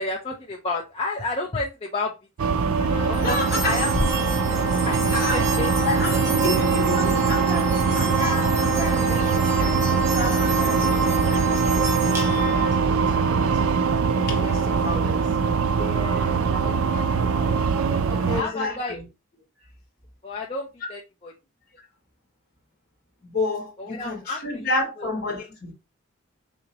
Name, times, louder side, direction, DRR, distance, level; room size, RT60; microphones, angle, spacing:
voice 1, 0.0-2.1 2.4-2.5 3.1-3.9 4.9-5.0 5.3-5.7 15.8-19.0 20.2-21.3 23.8-24.4 25.0-25.1, left 3 dB, 25° left, 0.5 m, -31 dB
sound 1, 2.4-18.4, right 5 dB, 80° right, 0.4 m, -22 dB
sound 2, 2.6-12.9, right 2 dB, 50° right, 2.1 m, -30 dB
sound 3, 3.1-12.7, right 2 dB, 10° right, 0.8 m, -33 dB
voice 2, 3.2-3.8 5.1-5.4 5.8-13.7 14.3-15.2 17.1-17.2 18.3-19.0 20.8-20.9 23.2-25.7, left 2 dB, 45° left, 1.4 m, -31 dB
4.1 x 2.8 x 2.8 m
head